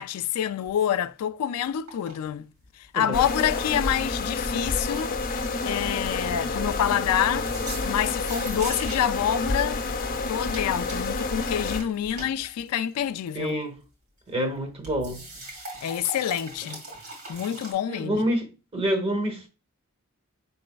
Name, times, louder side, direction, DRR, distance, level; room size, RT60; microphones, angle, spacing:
voice 1, 0.0-2.5 2.9-5.1 5.6-7.5 7.8-9.8 10.3-13.6 15.8-16.8 17.3-18.2, left 10 dB, 85° left, 0.3 m, -27 dB
sound 1, 0.7-0.8 1.9-2.2 2.6-3.3 4.1-4.5 4.8-5.1 5.4-5.9 6.2-7.1 7.5-9.2 10.0-13.5 14.8-17.7, right 1 dB, 75° right, 2.4 m, -41 dB
sound 2, 3.1-11.8, left 3 dB, 40° left, 0.7 m, -29 dB
voice 2, 13.3-13.8 14.3-15.2 17.9-18.5 18.7-19.5, equal, 25° right, 0.9 m, -27 dB
5.0 x 4.1 x 2.2 m
head